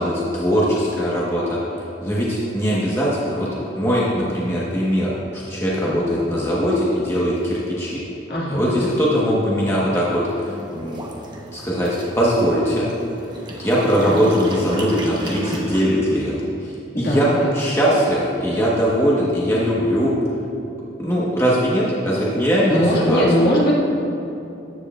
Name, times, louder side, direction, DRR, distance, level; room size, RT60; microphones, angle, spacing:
voice 1, 0.0-1.6 2.0-3.5 3.8-8.0 8.5-11.0 11.5-12.9 13.6-16.3 16.6-20.1 21.0-23.2, equal, 15° left, -6 dB, 1.2 m, -20 dB
voice 2, 8.3-8.9 16.9-17.5 22.7-23.7, equal, 55° left, -5 dB, 2.0 m, -20 dB
sound 1, 10.3-15.8, right 1 dB, 25° right, 0.9 m, -34 dB
14.0 x 9.8 x 2.4 m, 2.9 s
head